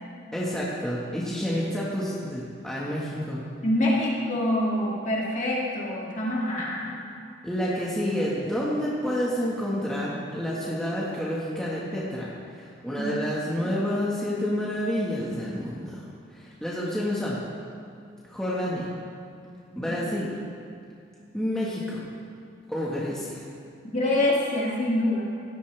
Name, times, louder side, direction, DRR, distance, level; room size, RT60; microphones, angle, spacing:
voice 1, 0.3-3.4 7.4-16.0 16.3-17.4 18.3-18.9 19.7-20.3 21.3-22.0 22.7-23.4, equal, 5° left, -7 dB, 1.6 m, -29 dB
voice 2, 3.6-7.1 13.0-13.1 19.7-19.9 23.9-25.2, left 1 dB, 40° left, -5 dB, 2.4 m, -26 dB
17.0 x 12.5 x 3.4 m, 2.4 s
head